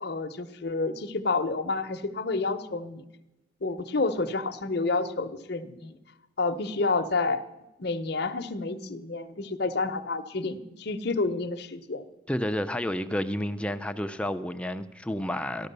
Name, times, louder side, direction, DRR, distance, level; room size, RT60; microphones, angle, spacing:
voice 1, 0.0-3.0 3.6-6.0 6.4-7.4 7.8-12.0, left 3 dB, 50° left, 9 dB, 0.8 m, -29 dB
voice 2, 12.3-15.7, left 1 dB, 5° left, 8 dB, 0.5 m, -30 dB
13.5 x 11.5 x 6.7 m, 0.98 s
head